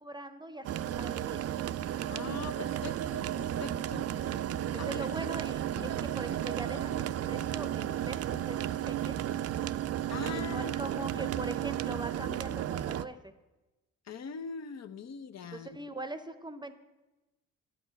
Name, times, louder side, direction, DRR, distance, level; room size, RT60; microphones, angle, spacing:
voice 1, 0.0-0.7 1.0-1.5 4.7-9.2 10.2-13.3 15.5-16.7, right 2 dB, 10° right, 10 dB, 0.7 m, -41 dB
sound 1, 0.6-13.1, right 11 dB, 45° right, 0.4 m, -33 dB
voice 2, 2.1-4.1 4.8-5.1 5.8-5.9 10.1-11.3 14.1-15.8, left 5 dB, 50° left, 9 dB, 0.7 m, -42 dB
10.0 x 6.0 x 6.5 m, 1.1 s
supercardioid pair, 60°, 35 cm